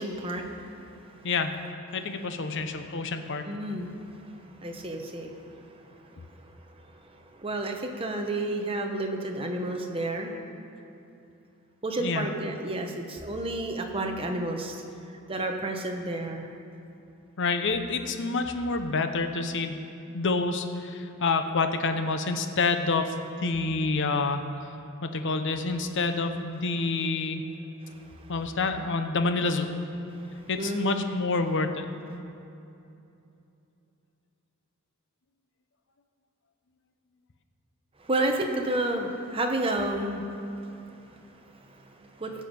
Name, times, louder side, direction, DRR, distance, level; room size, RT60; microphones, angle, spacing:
voice 1, 0.0-1.3 2.4-2.5 3.4-10.4 11.8-14.8 15.3-16.5 27.8-28.3 30.1-31.0 38.0-42.4, right 1 dB, 25° right, 3 dB, 1.0 m, -32 dB
voice 2, 1.2-1.6 1.9-3.5 12.0-12.3 17.4-19.8 20.1-23.1 23.4-24.4 25.0-27.4 28.3-29.7 30.5-31.9, left 3 dB, 60° left, 7 dB, 0.8 m, -28 dB
16.0 x 7.2 x 5.4 m, 2.8 s
head